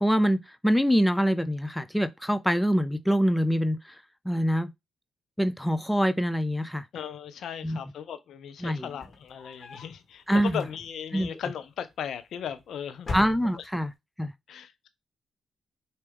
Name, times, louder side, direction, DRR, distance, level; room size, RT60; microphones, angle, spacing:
voice 1, 0.0-4.0 4.3-4.7 5.4-6.8 7.6-7.8 8.6-8.9 10.3-10.6 11.1-11.3 13.1-13.9 14.2-14.3, equal, 5° left, 0.5 m, -25 dB
voice 2, 6.9-13.1 13.4-13.8 14.5-14.9, left 8 dB, 70° left, 0.7 m, -37 dB
sound 1, 8.8-10.0 10.5-11.2 12.1-12.6 13.0-13.9, left 2 dB, 40° left, 1.5 m, -39 dB
4.8 x 2.9 x 3.5 m
supercardioid pair, 50°, 0 cm